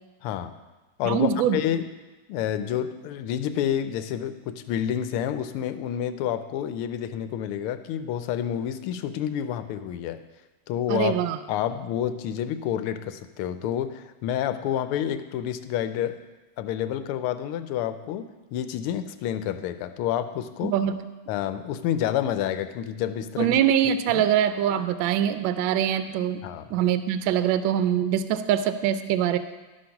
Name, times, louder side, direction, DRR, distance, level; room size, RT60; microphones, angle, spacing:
voice 1, 0.2-0.5 1.0-1.9 2.3-10.2 10.7-11.1 11.5-16.2 16.6-20.7 21.3-23.6 24.1-24.2 26.4-26.8, left 10 dB, 85° left, 11 dB, 1.5 m, -29 dB
voice 2, 1.0-1.6 10.9-11.4 20.6-21.0 23.4-26.4 26.7-29.4, right 9 dB, 75° right, 11 dB, 1.2 m, -23 dB
12.0 x 5.4 x 5.8 m, 1.1 s
omnidirectional pair, 2.4 m